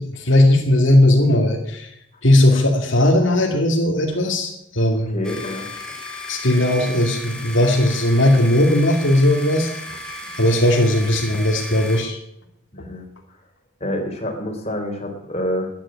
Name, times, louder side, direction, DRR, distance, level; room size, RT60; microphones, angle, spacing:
voice 1, 0.0-1.9 2.2-5.1 6.3-9.7 10.4-12.2 12.8-12.9, left 1 dB, 60° left, 1 dB, 2.5 m, -17 dB
voice 2, 5.1-5.7 12.7-13.1 13.8-15.7, left 1 dB, 30° left, 2 dB, 3.7 m, -27 dB
sound 1, 5.2-12.0, left 1 dB, 5° left, 2.5 m, -35 dB
13.5 x 10.5 x 9.9 m, 0.80 s
head